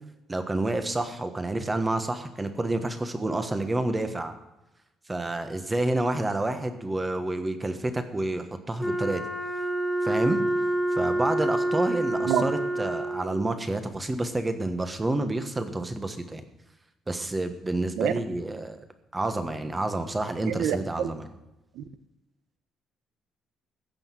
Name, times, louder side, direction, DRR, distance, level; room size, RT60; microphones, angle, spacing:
voice 1, 0.3-4.3 5.1-9.2 10.0-10.4 11.0-16.4 17.1-18.8 19.1-21.3, right 2 dB, 15° right, 8 dB, 1.3 m, -29 dB
Wind instrument woodwind instrument, 8.8-13.5, right 1 dB, ahead, 1.7 m, -27 dB
voice 2, 20.5-21.1 21.7-21.8, right 9 dB, 90° right, 12 dB, 1.0 m, -27 dB
15.5 x 6.4 x 7.6 m, 0.98 s
cardioid pair, 150°, 0 cm